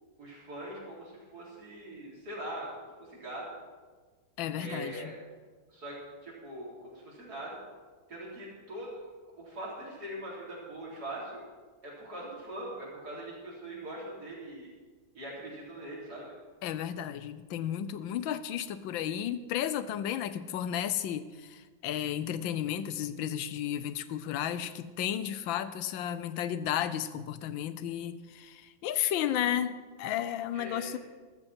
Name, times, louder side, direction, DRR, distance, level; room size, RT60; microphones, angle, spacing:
voice 1, 0.2-3.5 4.6-5.1 5.7-6.0 6.2-7.6 8.1-8.9 9.4-11.4 11.8-14.7 15.1-16.3 30.5-31.0, right 1 dB, 50° right, -5 dB, 4.5 m, -42 dB
voice 2, 4.4-5.1 16.6-31.0, left 10 dB, 80° left, 13 dB, 1.5 m, -33 dB
14.0 x 13.5 x 4.4 m, 1.4 s
omnidirectional pair, 2.1 m